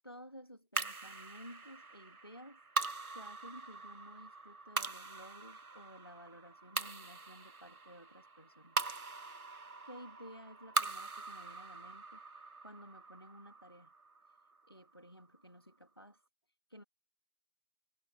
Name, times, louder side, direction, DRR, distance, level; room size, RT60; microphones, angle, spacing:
voice 1, 0.0-2.6 3.1-8.8 9.8-12.2 12.6-13.9 14.7-16.2 16.7-16.8, equal, 15° left, 2.5 m, -54 dB
sound 1, 0.8-15.3, right 3 dB, 60° right, 1.3 m, -42 dB
figure-of-eight pair, 180°, 49 cm